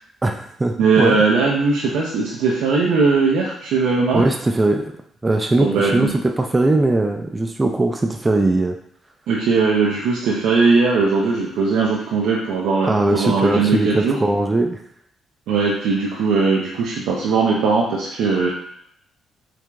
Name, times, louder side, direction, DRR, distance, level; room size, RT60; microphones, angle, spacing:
voice 1, 0.2-1.2 4.1-4.8 5.2-8.8 12.8-14.8, right 2 dB, 20° right, 3 dB, 0.4 m, -20 dB
voice 2, 0.8-4.2 5.6-6.1 9.3-14.1 15.5-18.5, right 4 dB, 85° right, -4 dB, 0.5 m, -19 dB
4.5 x 2.5 x 2.3 m, 0.69 s
cardioid pair, 90°, 0 cm